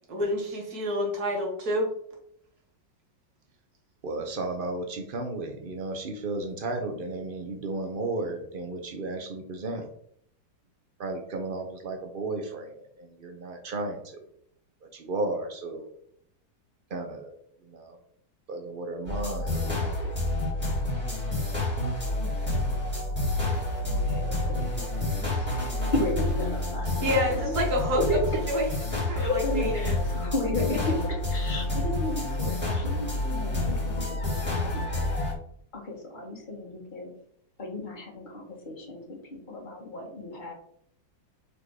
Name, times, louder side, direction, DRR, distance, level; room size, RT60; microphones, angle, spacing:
voice 1, 0.1-1.9 27.0-28.0 28.5-29.9, equal, 55° right, 1 dB, 1.9 m, -28 dB
voice 2, 4.0-9.9 11.0-14.2 14.8-15.9 16.9-17.4 17.6-18.0 18.5-20.1, right 2 dB, 85° right, 4 dB, 0.4 m, -34 dB
sound 1, 19.0-35.3, left 2 dB, 5° right, 2.7 m, -29 dB
voice 3, 23.9-28.4 29.1-35.1 35.7-37.1 37.6-40.5, left 1 dB, 25° left, -2 dB, 1.7 m, -34 dB
5.0 x 4.3 x 4.7 m, 0.68 s
omnidirectional pair, 2.0 m